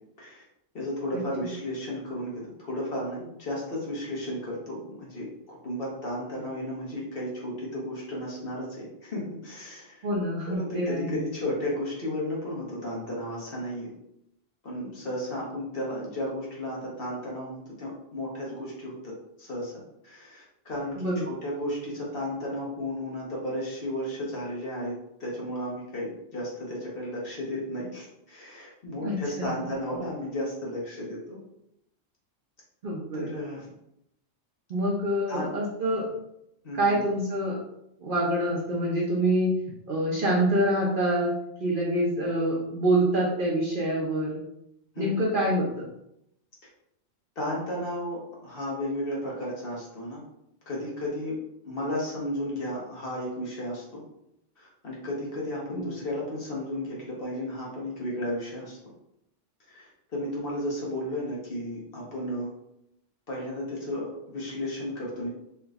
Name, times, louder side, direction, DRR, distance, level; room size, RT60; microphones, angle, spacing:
voice 1, 0.7-10.1 10.5-13.9 14.6-19.1 19.4-19.7 20.0-24.9 25.2-31.4 33.1-33.7 35.3-35.5 36.6-37.1 44.9-45.1 47.4-50.2 50.7-51.4 51.6-54.0 54.6-58.8 59.7-62.5 63.3-65.3, left 1 dB, 50° left, -4 dB, 1.1 m, -33 dB
voice 2, 10.0-11.2 21.0-21.3 29.0-29.5 32.8-33.4 34.7-36.0 36.8-37.6 38.0-39.5 39.9-41.3 41.6-44.4 45.0-45.7 55.7-55.9, right 1 dB, 55° right, -4 dB, 0.7 m, -26 dB
3.3 x 3.0 x 2.4 m, 0.79 s
omnidirectional pair, 1.3 m